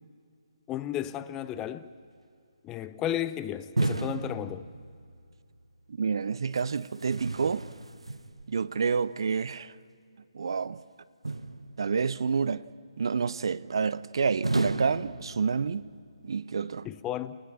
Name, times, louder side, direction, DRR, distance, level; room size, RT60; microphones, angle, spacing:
voice 1, 0.7-1.9 2.6-4.7 16.8-17.4, left 11 dB, 15° left, 0.6 m, -33 dB
sound 1, 3.8-5.2 6.5-8.6 11.2-12.1 14.4-15.9, right 2 dB, 80° right, 0.9 m, -33 dB
voice 2, 5.9-7.7 8.5-9.7 10.3-10.8 11.8-15.9 16.2-16.9, right 5 dB, 55° right, 0.6 m, -29 dB
29.5 x 20.0 x 6.1 m
figure-of-eight pair, 140°, 3 cm